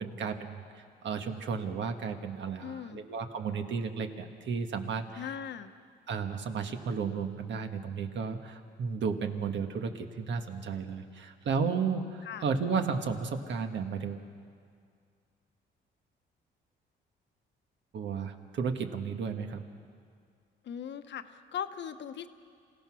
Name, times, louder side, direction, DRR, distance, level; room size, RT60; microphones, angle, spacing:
voice 1, 0.0-5.3 6.1-14.3 17.9-19.6, right 5 dB, 65° right, 6 dB, 1.7 m, -33 dB
voice 2, 2.6-3.0 5.2-5.7 12.2-12.4 20.6-22.3, left 8 dB, 65° left, 9 dB, 1.1 m, -39 dB
27.5 x 17.0 x 6.3 m, 2.2 s
cardioid pair, 90°, 20 cm